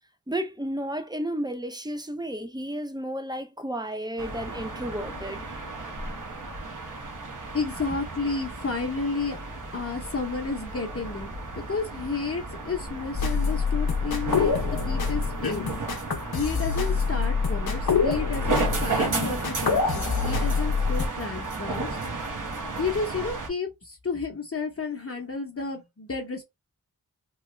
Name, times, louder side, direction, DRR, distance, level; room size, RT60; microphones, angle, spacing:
voice 1, 0.3-5.5, right 1 dB, 10° right, 0.5 m, -32 dB
sound 1, 4.2-23.5, right 3 dB, 60° right, 1.0 m, -34 dB
voice 2, 7.5-9.4 9.7-15.6 16.3-21.9 22.8-26.4, left 4 dB, 40° left, 0.7 m, -31 dB
sound 2, 13.2-21.1, left 5 dB, 85° left, 0.7 m, -26 dB
3.1 x 2.4 x 3.0 m
wide cardioid pair, 65°, 36 cm